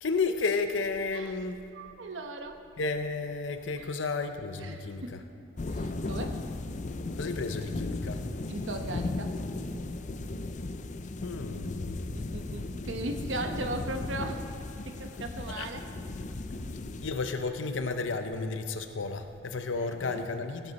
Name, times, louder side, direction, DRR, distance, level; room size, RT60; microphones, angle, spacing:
voice 1, 0.0-1.6 2.8-5.2 7.2-8.2 11.2-12.0 15.5-15.7 17.0-20.7, left 4 dB, 80° left, 8 dB, 0.6 m, -32 dB
voice 2, 1.7-2.6 3.8-3.9 4.6-5.1 5.7-6.4 8.5-9.4 12.1-14.4 14.9-15.9 19.7-20.2, right 2 dB, 80° right, 5 dB, 1.0 m, -38 dB
sound 1, 5.6-17.1, left 2 dB, 40° left, 0.4 m, -36 dB
17.0 x 10.0 x 4.1 m, 2.8 s
head